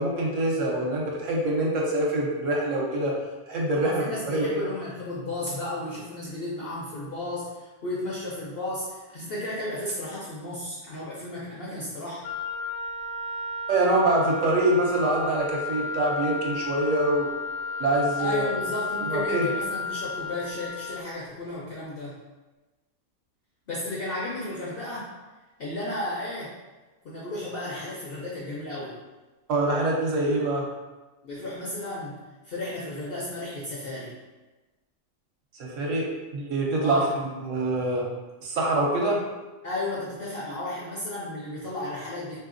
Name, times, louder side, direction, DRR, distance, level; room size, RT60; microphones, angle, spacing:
voice 1, 0.0-3.1 3.5-4.6 13.7-17.3 17.8-18.4 19.0-19.5 29.5-30.6 35.6-37.0 37.5-38.0 38.4-39.2, right 1 dB, 65° right, -2 dB, 1.0 m, -25 dB
voice 2, 3.7-12.3 18.2-22.2 23.7-25.1 25.6-26.5 27.0-28.9 31.2-32.2 32.4-34.1 36.8-37.2 39.6-42.4, left 1 dB, 60° left, -6 dB, 0.6 m, -33 dB
Wind instrument woodwind instrument, 12.2-21.1, left 3 dB, 80° left, 1.1 m, -33 dB
3.3 x 2.7 x 2.5 m, 1.2 s
omnidirectional pair, 1.5 m